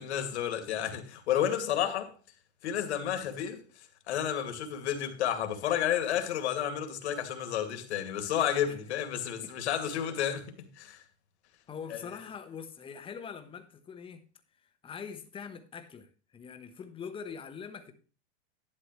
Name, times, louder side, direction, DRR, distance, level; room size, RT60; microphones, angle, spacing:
voice 1, 0.0-2.1 2.6-3.6 4.1-11.0 11.9-12.0, left 10 dB, 70° left, 2.5 m, -31 dB
voice 2, 11.7-14.2 14.8-17.9, left 6 dB, 15° left, 1.2 m, -43 dB
12.0 x 9.9 x 3.2 m
supercardioid pair, 145°, 34 cm